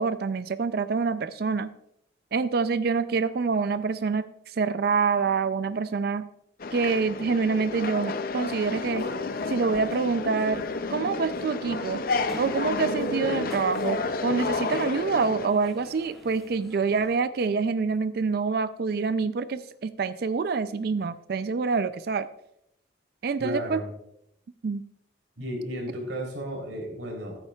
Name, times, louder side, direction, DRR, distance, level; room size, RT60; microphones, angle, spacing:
voice 1, 0.0-1.7 2.3-6.3 6.7-9.1 9.5-10.6 10.9-12.0 12.4-22.3 23.2-23.8 24.6-24.8, right 4 dB, 50° right, 13 dB, 0.4 m, -26 dB
sound 1, 6.6-15.5, left 3 dB, 45° left, 0.5 m, -31 dB
sound 2, 8.4-17.1, right 3 dB, ahead, 1.8 m, -44 dB
voice 2, 23.4-23.9 25.4-27.5, equal, 80° right, 0 dB, 3.5 m, -33 dB
15.0 x 8.8 x 2.4 m, 0.78 s
head